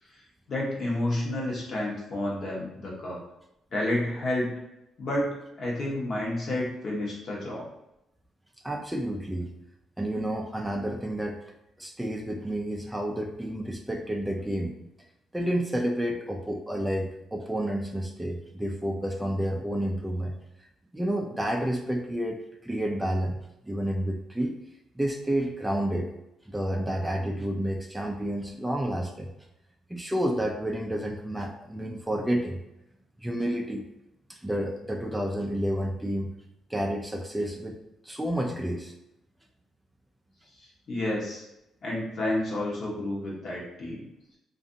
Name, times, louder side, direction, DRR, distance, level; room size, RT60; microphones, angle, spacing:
voice 1, 0.5-3.2 3.7-4.6 5.0-7.7 40.9-41.4 41.8-44.1, left 1 dB, 55° left, -3 dB, 1.0 m, -30 dB
voice 2, 8.6-9.5 10.0-11.4 11.8-14.7 15.3-20.4 20.9-23.4 23.6-24.6 25.0-26.1 26.5-29.3 29.9-32.6 33.2-33.9 34.3-36.4 36.7-37.8 38.0-38.9, right 1 dB, 10° right, 1 dB, 0.3 m, -30 dB
2.6 x 2.4 x 2.5 m, 0.86 s
cardioid pair, 90°, 0 cm